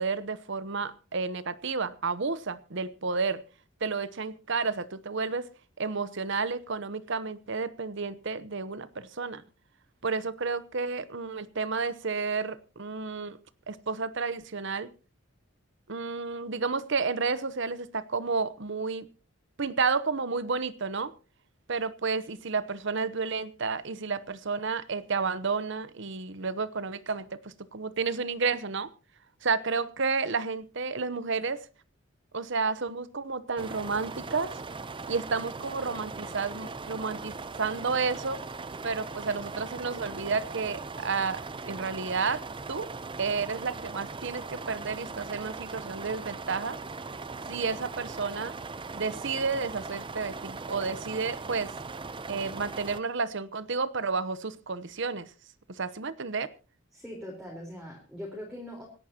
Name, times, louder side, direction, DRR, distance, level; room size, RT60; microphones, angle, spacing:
voice 1, 0.0-3.4 3.8-5.5 5.8-9.4 10.0-13.4 13.7-14.9 15.9-19.1 19.6-21.1 21.7-28.9 29.4-31.7 32.3-34.6 35.1-38.4 38.8-42.4 42.7-42.9 43.2-46.8 47.5-48.5 48.9-51.7 52.2-55.3 55.7-56.5, right 4 dB, 60° right, 15 dB, 0.9 m, -31 dB
sound 1, 33.6-53.0, right 4 dB, 25° right, 0.6 m, -39 dB
voice 2, 56.9-58.8, left 1 dB, 5° right, -3 dB, 4.0 m, -41 dB
26.5 x 11.0 x 2.9 m, 0.35 s
head